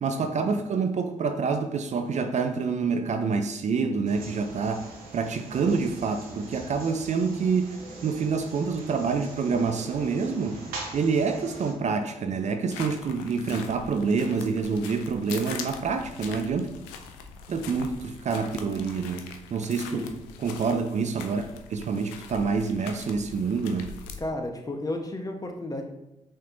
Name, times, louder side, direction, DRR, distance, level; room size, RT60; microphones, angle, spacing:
voice 1, 0.0-7.8 8.0-10.6 10.9-16.7 17.5-20.1 20.4-23.9, right 5 dB, 50° right, 0.5 m, -27 dB
sound 1, 4.0-11.7, right 3 dB, 70° right, 1.0 m, -42 dB
sound 2, 12.7-24.3, left 6 dB, 85° left, 0.4 m, -42 dB
voice 2, 24.2-25.8, left 1 dB, 25° left, 1.0 m, -33 dB
5.5 x 3.4 x 2.6 m
hypercardioid pair, 40°, 15 cm